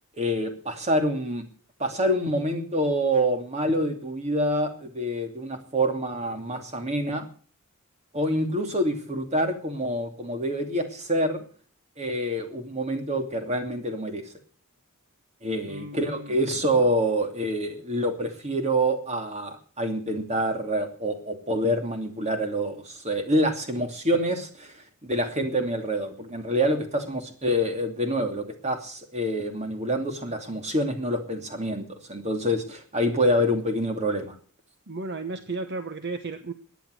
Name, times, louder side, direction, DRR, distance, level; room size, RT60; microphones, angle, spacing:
voice 1, 0.2-1.4 1.8-7.3 8.1-11.4 12.0-14.3 15.4-24.7 25.0-34.3, equal, 30° right, 5 dB, 2.7 m, -26 dB
voice 2, 15.7-16.5 34.9-36.5, right 3 dB, 50° right, 9 dB, 1.1 m, -34 dB
17.5 x 10.5 x 6.5 m, 0.43 s
head